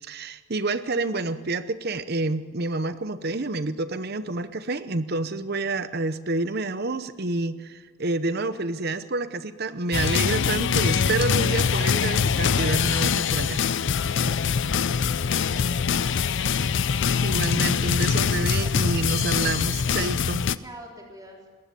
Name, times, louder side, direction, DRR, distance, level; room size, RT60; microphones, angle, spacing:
voice 1, 0.0-13.6 17.2-20.5, right 2 dB, 45° right, 12 dB, 0.8 m, -28 dB
sound 1, 9.9-20.6, left 6 dB, 55° left, 0.5 m, -23 dB
voice 2, 14.6-16.8 18.6-19.1 20.6-21.4, equal, 15° right, -1 dB, 3.6 m, -45 dB
21.0 x 18.0 x 6.9 m, 1.5 s
head